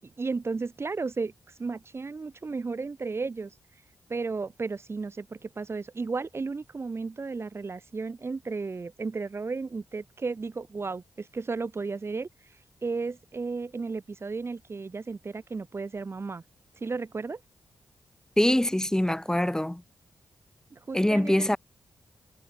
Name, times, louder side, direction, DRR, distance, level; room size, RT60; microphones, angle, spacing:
voice 1, 0.0-1.3 1.6-3.5 4.1-12.3 12.8-16.4 16.8-17.4 20.7-21.6, right 4 dB, 45° right, 7.1 m, -34 dB
voice 2, 18.4-19.8 20.9-21.6, left 1 dB, 10° left, 6.9 m, -24 dB
supercardioid pair, 45°, 6 cm